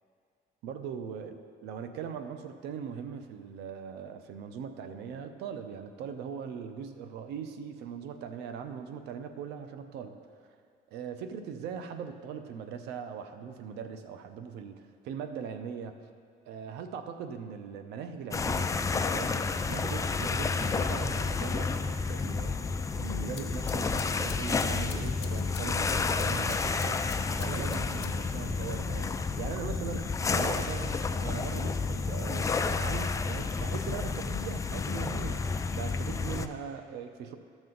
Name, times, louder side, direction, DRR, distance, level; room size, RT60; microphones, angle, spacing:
voice 1, 0.6-10.2 10.9-16.0 16.4-37.4, right 7 dB, 85° right, 8 dB, 0.7 m, -40 dB
sound 1, 18.3-36.5, left 4 dB, 20° left, 0.4 m, -30 dB
sound 2, 23.4-28.4, left 11 dB, 85° left, 0.6 m, -48 dB
13.0 x 6.2 x 3.9 m, 2.1 s
cardioid pair, 110°, 17 cm